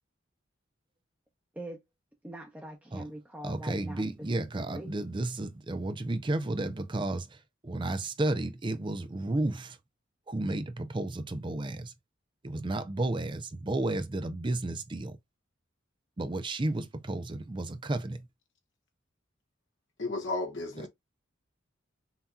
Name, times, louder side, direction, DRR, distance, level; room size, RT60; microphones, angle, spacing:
voice 1, 2.2-4.0 4.4-4.9, right 1 dB, 10° right, 0.9 m, -43 dB
voice 2, 3.4-7.4 7.6-9.8 10.3-11.9 12.4-15.2 16.2-18.3, right 2 dB, 25° right, 0.5 m, -32 dB
voice 3, 20.0-20.9, left 2 dB, 60° left, 1.2 m, -33 dB
5.8 x 2.8 x 2.3 m
head